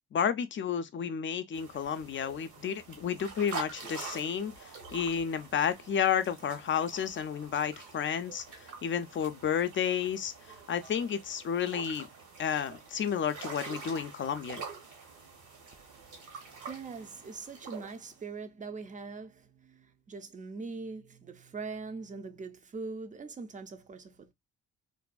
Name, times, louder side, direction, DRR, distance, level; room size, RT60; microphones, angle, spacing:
voice 1, 0.1-4.5 4.9-8.4 8.8-10.3 10.7-12.1 12.4-14.6, left 8 dB, 40° left, 0.4 m, -31 dB
sound 1, 1.5-18.2, right 4 dB, 75° right, 1.3 m, -46 dB
voice 2, 16.1-24.3, right 4 dB, 25° right, 0.5 m, -42 dB
2.6 x 2.3 x 2.2 m
cardioid pair, 90°, 30 cm